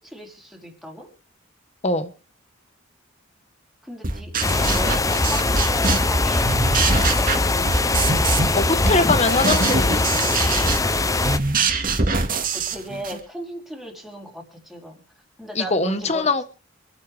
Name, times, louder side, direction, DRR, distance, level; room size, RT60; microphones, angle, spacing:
voice 1, 0.0-1.1 3.8-6.7 7.0-7.9 12.5-15.0 15.4-16.3, equal, ahead, 0 dB, 3.7 m, -36 dB
sound 1, 4.0-6.2 6.4-8.6 8.8-13.2, right 4 dB, 45° right, 2.2 m, -24 dB
sound 2, 4.4-11.4, left 2 dB, 15° left, 0.7 m, -21 dB
voice 2, 8.5-10.2 15.5-16.4, left 3 dB, 30° left, 11 dB, 1.3 m, -22 dB
26.5 x 8.9 x 3.5 m, 0.35 s
head